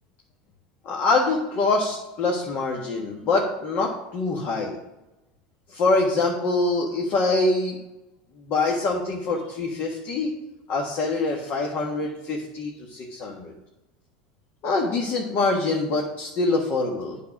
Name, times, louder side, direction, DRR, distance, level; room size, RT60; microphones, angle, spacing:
voice 1, 0.8-4.8 5.7-7.8 8.4-10.3 10.7-13.5 14.6-17.2, left 3 dB, 50° left, -1 dB, 1.6 m, -24 dB
9.3 x 5.7 x 6.0 m, 1.0 s
hypercardioid pair, 100°, 4 cm